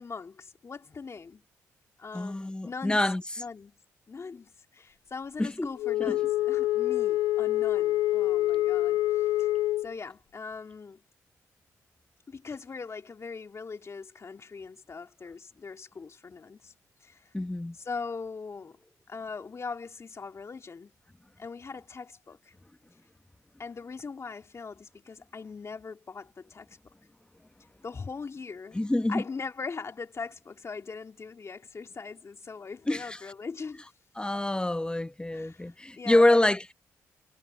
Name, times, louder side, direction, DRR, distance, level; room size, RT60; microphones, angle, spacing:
voice 1, 0.0-1.4 2.0-3.0 3.4-3.7 4.1-9.5 9.8-11.0 12.3-16.7 17.0-17.3 17.7-18.8 19.1-20.9 21.4-22.5 23.6-26.7 27.8-28.8 29.1-33.8 35.3-36.4, left 4 dB, 45° left, 3.2 m, -40 dB
voice 2, 2.1-3.2 5.4-5.7 6.0-6.2 17.3-17.8 28.7-29.2 32.9-33.2 34.2-36.6, left 1 dB, 15° left, 1.1 m, -26 dB
Wind instrument woodwind instrument, 5.8-9.9, left 15 dB, 90° left, 1.0 m, -26 dB
supercardioid pair, 55°, 7 cm